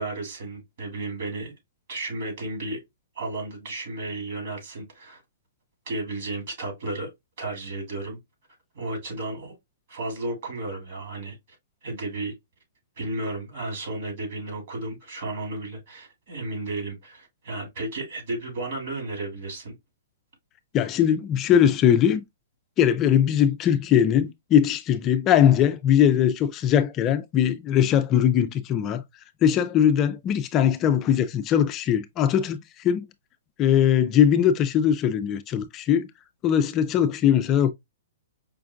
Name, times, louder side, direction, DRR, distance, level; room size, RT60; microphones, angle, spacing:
voice 1, 0.0-1.5 1.9-2.8 3.2-5.2 5.9-7.1 7.4-8.2 8.7-9.5 9.9-11.4 11.8-12.3 13.0-19.7, right 2 dB, 55° right, 2.7 m, -33 dB
voice 2, 20.7-22.2 22.8-29.0 29.4-33.1 33.6-36.1 36.4-37.7, left 9 dB, 25° left, 0.3 m, -20 dB
5.0 x 2.4 x 2.3 m
hypercardioid pair, 150°, 0 cm